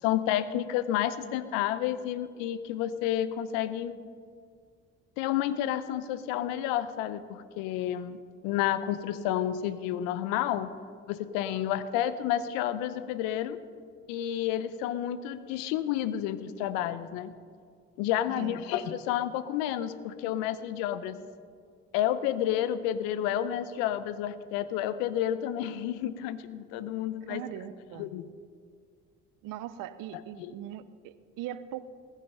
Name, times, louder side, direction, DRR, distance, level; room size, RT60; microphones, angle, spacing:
voice 1, 0.0-3.9 5.2-10.7 11.1-13.6 14.1-17.3 18.0-21.2 21.9-27.4 28.0-28.3 30.4-30.5, left 11 dB, 80° left, 14 dB, 0.8 m, -30 dB
voice 2, 27.3-28.2 29.4-31.8, right 12 dB, 70° right, 14 dB, 0.8 m, -40 dB
20.0 x 8.5 x 5.6 m, 2.1 s
hypercardioid pair, 55°, 35 cm